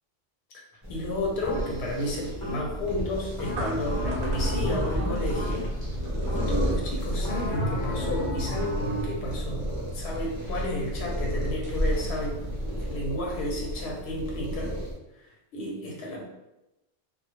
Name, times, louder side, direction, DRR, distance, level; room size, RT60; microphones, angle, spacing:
sound 1, 0.8-14.9, equal, 30° right, 0.5 m, -33 dB
voice 1, 0.9-5.7 6.3-12.4 12.9-14.7 15.2-16.2, left 1 dB, 90° left, -1 dB, 0.8 m, -32 dB
sound 2, 1.4-2.0 2.4-2.9 3.4-5.9 6.3-6.8 7.2-9.2, left 1 dB, 25° left, 0.5 m, -33 dB
sound 3, 1.5-12.9, right 1 dB, 65° right, 0.7 m, -35 dB
2.2 x 2.1 x 2.8 m, 0.95 s
omnidirectional pair, 1.1 m